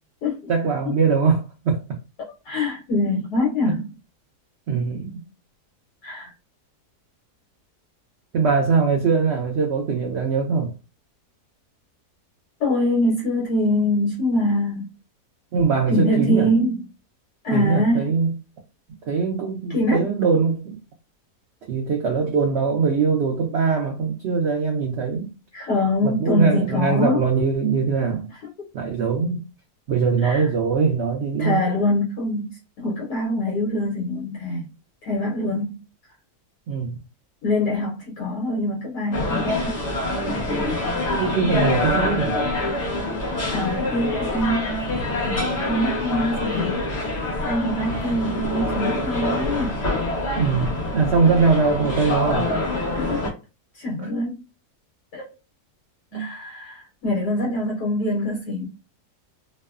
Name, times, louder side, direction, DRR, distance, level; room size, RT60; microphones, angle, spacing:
voice 1, 0.5-2.0 4.7-5.2 8.3-10.7 15.5-16.5 17.5-18.3 19.1-20.8 21.7-25.3 26.0-28.3 28.7-29.4 29.9-31.6 36.7-37.0 41.1-42.4 50.4-52.5 54.0-54.1 56.1-56.3, right 5 dB, 85° right, 0.5 m, -22 dB
voice 2, 2.4-3.9 6.0-6.3 12.6-14.9 15.9-16.8 17.4-18.0 19.7-20.1 25.5-27.3 30.2-30.5 31.4-34.7 35.0-35.8 37.4-39.8 43.5-46.8 47.4-49.9 52.9-53.3 53.7-54.5 55.1-55.3 56.1-58.6, left 1 dB, 75° left, 1.3 m, -24 dB
sound 1, 39.1-53.3, left 2 dB, 50° left, 1.3 m, -25 dB
3.0 x 2.0 x 2.3 m
omnidirectional pair, 1.7 m